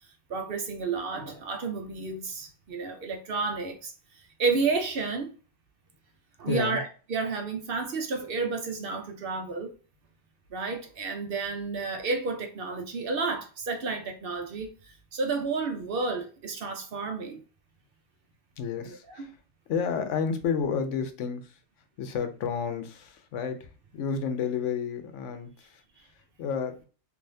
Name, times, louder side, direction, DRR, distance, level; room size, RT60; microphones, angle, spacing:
voice 1, 0.3-3.9 4.4-5.3 6.4-9.7 10.5-17.4 18.8-19.3, right 4 dB, 60° right, 0.7 m, -31 dB
voice 2, 6.5-6.8 18.6-19.4 19.7-21.6 22.0-26.8, left 6 dB, 85° left, 1.0 m, -31 dB
3.3 x 2.6 x 2.6 m
omnidirectional pair, 1.2 m